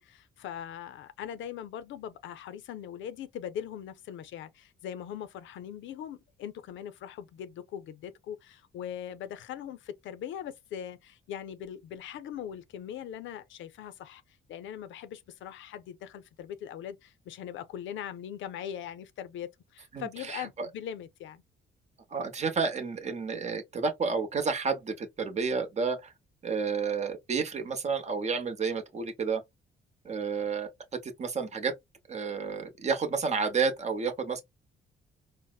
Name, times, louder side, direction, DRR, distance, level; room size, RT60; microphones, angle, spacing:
voice 1, 0.0-14.2 14.5-21.4, left 9 dB, 75° left, 0.5 m, -41 dB
voice 2, 19.9-20.7 22.1-26.1 26.4-29.4 30.0-30.7 31.0-31.7 32.1-34.4, right 5 dB, 35° right, 0.8 m, -30 dB
4.0 x 2.0 x 2.2 m
cardioid pair, 90°, 20 cm